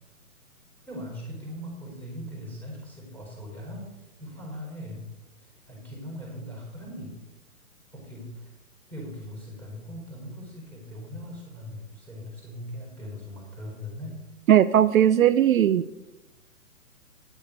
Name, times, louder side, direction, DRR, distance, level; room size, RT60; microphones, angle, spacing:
voice 1, 0.8-5.0 5.5-7.2 7.9-8.5 8.9-14.2, equal, 5° left, -2 dB, 4.9 m, -40 dB
voice 2, 14.5-15.8, right 10 dB, 65° right, 12 dB, 0.6 m, -18 dB
10.5 x 8.6 x 6.7 m, 0.97 s
hypercardioid pair, 140°, 44 cm